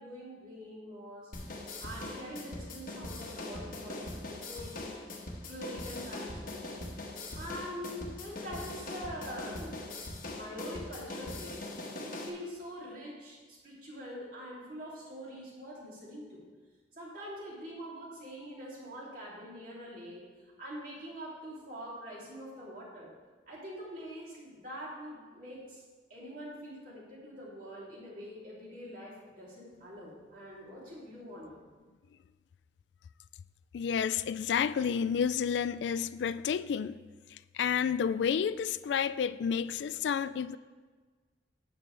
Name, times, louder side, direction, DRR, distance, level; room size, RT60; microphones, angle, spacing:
voice 1, 0.0-1.3 1.8-5.0 5.4-7.0 7.3-9.8 10.3-11.7 12.0-16.4 16.9-23.1 23.5-25.8 26.1-31.6, equal, 50° right, 3.0 m, -44 dB
sound 1, 1.3-12.3, left 2 dB, 50° left, 1.2 m, -41 dB
voice 2, 33.7-37.0 37.5-40.6, left 7 dB, 75° left, 0.3 m, -30 dB
11.5 x 8.4 x 3.3 m
head